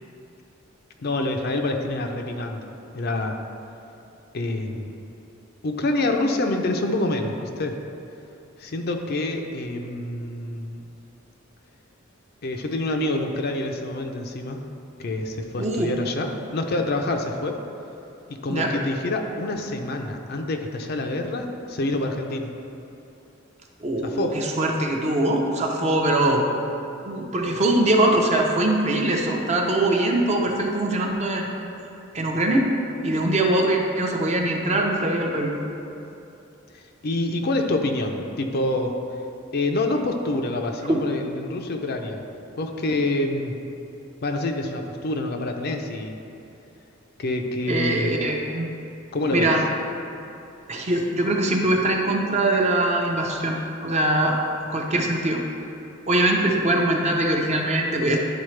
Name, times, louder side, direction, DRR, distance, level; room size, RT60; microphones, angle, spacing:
voice 1, 1.0-2.7 2.9-3.4 4.3-4.9 5.6-7.8 8.6-10.8 12.4-14.6 15.0-17.6 18.4-22.5 24.0-24.4 36.7-38.9 39.5-42.2 42.6-43.5 44.2-46.2 47.2-48.1 49.1-49.5, left 2 dB, 50° left, 4 dB, 0.5 m, -27 dB
voice 2, 15.6-15.9 18.5-18.7 23.8-26.4 27.0-31.5 32.1-32.7 33.0-35.5 40.8-41.0 47.7-48.7 49.3-49.6 50.7-53.6 53.8-54.4 54.7-55.4 56.1-58.2, right 1 dB, 35° right, 0 dB, 0.7 m, -22 dB
10.5 x 4.1 x 3.2 m, 2.8 s
head